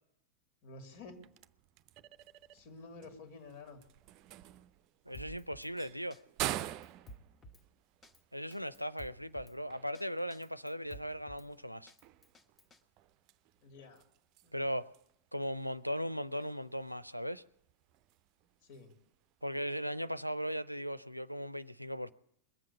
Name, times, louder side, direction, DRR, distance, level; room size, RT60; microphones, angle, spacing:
voice 1, 0.6-1.2 2.5-3.8 13.6-14.0 14.4-14.6 18.6-18.9, left 3 dB, 50° left, 2.7 m, -51 dB
sound 1, 0.9-20.5, right 13 dB, 40° right, 0.5 m, -48 dB
Drum kit, 5.1-5.7 6.1-6.2 6.5-7.6 8.0-8.2 8.5-9.6 9.9-10.0 10.3-11.5 11.9-12.8, equal, 20° left, 1.2 m, -53 dB
voice 2, 5.1-6.2 8.3-11.9 14.5-14.9 15.3-17.4 19.4-22.1, equal, 90° right, 0.5 m, -38 dB
21.5 x 7.7 x 8.3 m
figure-of-eight pair, 90°, 0 cm